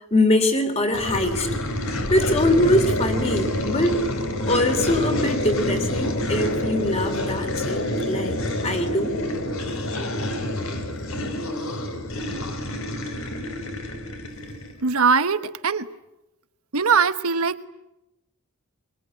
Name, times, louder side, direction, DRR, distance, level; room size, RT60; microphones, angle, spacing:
voice 1, 0.1-1.5 2.1-4.0 4.5-8.4 8.6-9.1, left 1 dB, 30° left, 6 dB, 3.2 m, -22 dB
sound 1, 0.9-14.8, left 1 dB, 70° left, 3.2 m, -27 dB
voice 2, 14.8-15.9 16.7-17.7, right 5 dB, 85° right, 12 dB, 1.3 m, -21 dB
23.5 x 23.0 x 9.7 m, 0.91 s
head